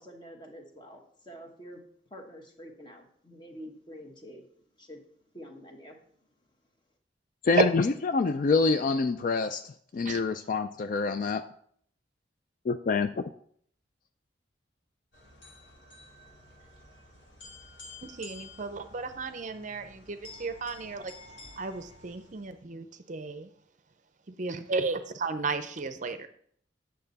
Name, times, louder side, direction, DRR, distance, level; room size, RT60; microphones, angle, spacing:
voice 1, 0.0-1.8 2.1-4.5 4.8-5.0 5.3-6.0, equal, 25° left, 3 dB, 1.2 m, -47 dB
voice 2, 7.5-11.4 12.7-13.2, left 4 dB, 45° left, 10 dB, 0.3 m, -26 dB
sound 1, 15.1-22.6, left 3 dB, 80° left, 2.5 m, -51 dB
voice 3, 18.0-21.1 21.6-23.5 24.4-26.3, right 4 dB, 40° right, 10 dB, 0.5 m, -33 dB
8.9 x 6.6 x 4.0 m, 0.62 s
head